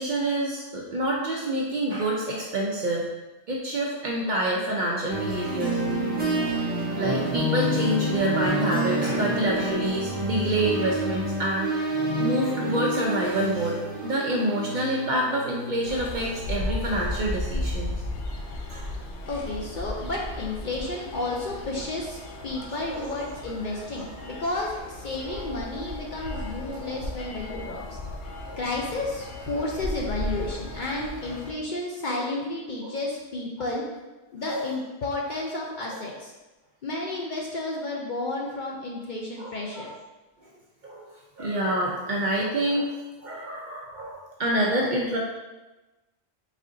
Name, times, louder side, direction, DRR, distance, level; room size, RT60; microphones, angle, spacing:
voice 1, 0.0-3.0 3.5-5.8 6.9-11.7 12.2-17.9 18.7-18.9 22.8-23.2 23.7-23.8 25.3-25.4 26.7-27.0 28.5-28.6 32.8-32.9 34.5-34.6 39.4-39.9 40.8-41.1 41.4-45.2, right 1 dB, 60° right, -2 dB, 0.5 m, -27 dB
sound 1, 5.1-16.6, right 1 dB, 10° right, 1.1 m, -28 dB
sound 2, 15.9-31.5, left 1 dB, 75° left, 0.9 m, -35 dB
voice 2, 19.3-28.0 28.6-33.8 34.3-36.3 36.8-39.9, left 2 dB, 55° left, -2 dB, 0.6 m, -32 dB
4.2 x 3.6 x 2.5 m, 1.1 s
omnidirectional pair, 1.2 m